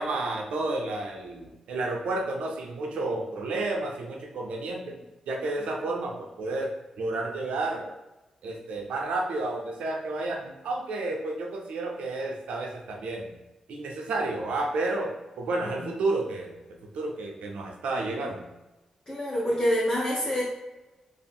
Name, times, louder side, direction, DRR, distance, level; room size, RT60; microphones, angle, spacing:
voice 1, 0.0-5.0 5.3-6.7 7.0-7.9 8.4-13.3 13.7-18.5, right 2 dB, 80° right, 0 dB, 0.5 m, -31 dB
voice 2, 19.1-20.4, equal, 25° left, -7 dB, 0.8 m, -27 dB
2.5 x 2.0 x 3.5 m, 1.0 s
supercardioid pair, 55°, 2 cm